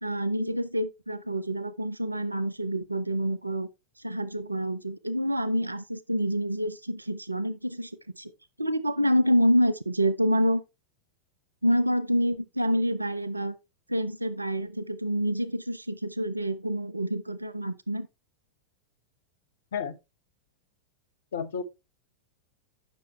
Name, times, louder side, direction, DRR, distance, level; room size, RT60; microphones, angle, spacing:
voice 1, 0.0-3.7 4.0-8.3 8.6-10.6 11.6-13.5 13.9-18.1, equal, 85° right, 0.6 m, -27 dB
voice 2, 21.3-21.6, left 7 dB, 60° left, 1.1 m, -31 dB
9.5 x 6.2 x 3.2 m
figure-of-eight pair, 90°, 0 cm